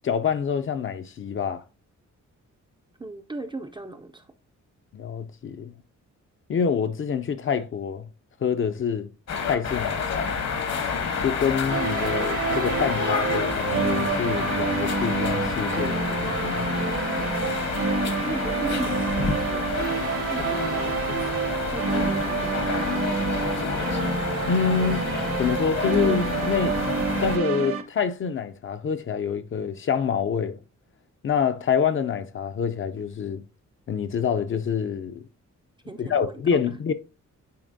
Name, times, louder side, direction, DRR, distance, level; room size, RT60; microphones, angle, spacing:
voice 1, 0.0-1.6 4.9-5.7 6.5-8.1 8.4-9.1 9.5-10.4 11.2-16.7 24.4-26.8 27.2-30.6 31.2-33.4 33.9-35.2 36.0-36.9, left 7 dB, 45° left, 0.4 m, -26 dB
voice 2, 3.0-4.3 17.8-19.9 20.3-21.4 21.7-23.7 35.8-36.4, right 3 dB, 15° right, 0.4 m, -38 dB
sound 1, 9.3-27.4, left 5 dB, 60° left, 1.1 m, -29 dB
sound 2, 11.7-27.8, right 5 dB, 50° right, 0.8 m, -28 dB
9.3 x 4.4 x 2.6 m
wide cardioid pair, 150°, 30 cm